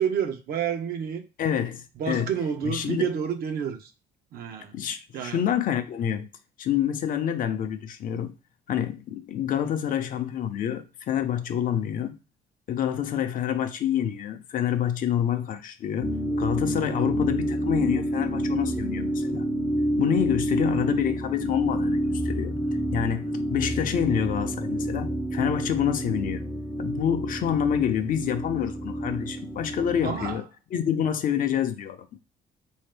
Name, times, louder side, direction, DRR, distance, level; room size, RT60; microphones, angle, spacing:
voice 1, 0.0-1.2 2.0-3.9 4.3-4.8 5.1-5.4 30.0-30.4, right 8 dB, 65° right, 0.8 m, -29 dB
voice 2, 1.4-2.3 2.6-3.1 4.7-6.3 6.6-8.3 8.7-12.2 12.7-19.4 20.0-22.6 22.9-26.4 26.8-32.1, left 9 dB, 55° left, 0.6 m, -27 dB
sound 1, 16.0-30.4, equal, 5° left, 0.5 m, -28 dB
3.7 x 2.7 x 3.3 m
cardioid pair, 110°, 17 cm